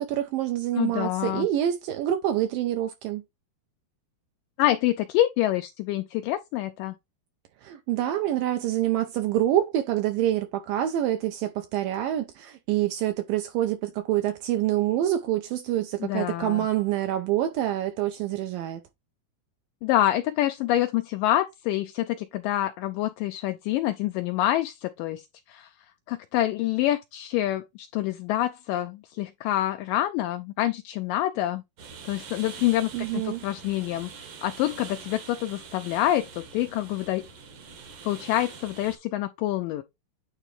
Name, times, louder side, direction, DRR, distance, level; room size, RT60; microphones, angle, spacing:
voice 1, 0.0-3.2 7.6-18.8 32.9-33.4, right 12 dB, 80° right, 2.3 m, -26 dB
voice 2, 0.7-1.5 4.6-7.0 16.0-16.7 19.8-25.2 25.5-25.7 26.1-31.6 32.1-34.1 34.4-37.3 38.0-39.8, left 14 dB, 80° left, 2.0 m, -26 dB
sound 1, 31.8-39.0, right 6 dB, 60° right, 1.7 m, -44 dB
9.1 x 3.4 x 3.2 m
omnidirectional pair, 4.3 m